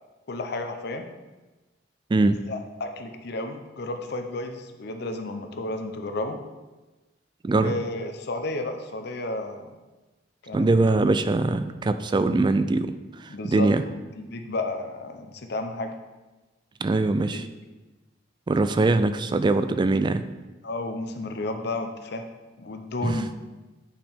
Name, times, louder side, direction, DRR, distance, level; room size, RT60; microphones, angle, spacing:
voice 1, 0.3-1.1 2.5-6.4 7.5-9.8 10.4-11.0 13.3-15.9 17.3-17.4 20.6-22.3 22.6-23.3, left 2 dB, 60° left, 6 dB, 0.7 m, -32 dB
voice 2, 7.4-7.8 10.5-12.9 13.2-13.8 16.8-17.4 18.5-20.2 23.0-23.2, right 2 dB, 25° right, 11 dB, 0.3 m, -22 dB
8.8 x 5.1 x 3.5 m, 1.2 s
head